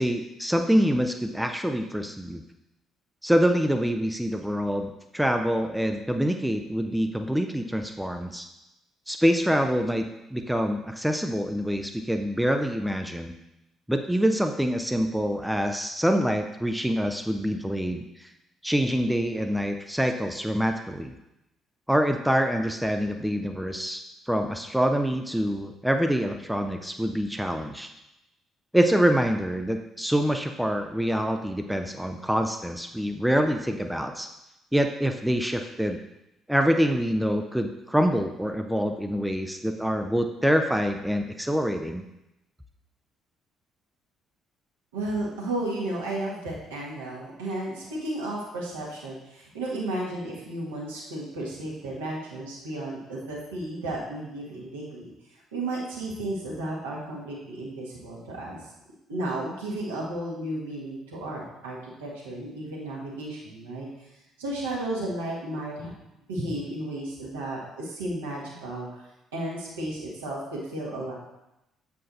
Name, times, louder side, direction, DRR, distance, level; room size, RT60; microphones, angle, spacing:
voice 1, 0.0-2.4 3.2-8.5 9.1-13.3 13.9-18.3 18.6-21.1 21.9-27.9 28.7-34.3 34.7-36.0 36.5-42.0, equal, 5° right, 5 dB, 0.5 m, -25 dB
voice 2, 44.9-55.1 55.5-58.7 59.1-63.9 64.4-65.9 66.3-69.1 69.3-71.1, right 1 dB, 75° right, -5 dB, 1.6 m, -33 dB
7.5 x 5.9 x 2.6 m, 0.89 s
figure-of-eight pair, 45°, 0 cm